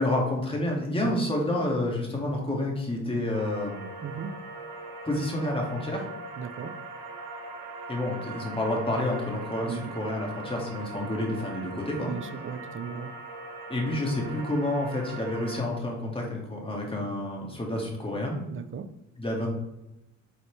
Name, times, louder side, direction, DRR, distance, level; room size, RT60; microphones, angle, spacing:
voice 1, 0.0-3.8 5.0-6.0 7.9-12.1 13.7-18.4 19.2-19.5, left 1 dB, 20° left, -1 dB, 2.2 m, -29 dB
sound 1, 3.3-15.6, right 3 dB, 80° right, 1.3 m, -40 dB
voice 2, 4.0-4.4 6.4-6.8 9.6-10.0 12.0-13.1 18.5-18.9, right 6 dB, 40° right, 11 dB, 0.7 m, -37 dB
8.4 x 4.3 x 3.4 m, 0.94 s
cardioid pair, 90°, 30 cm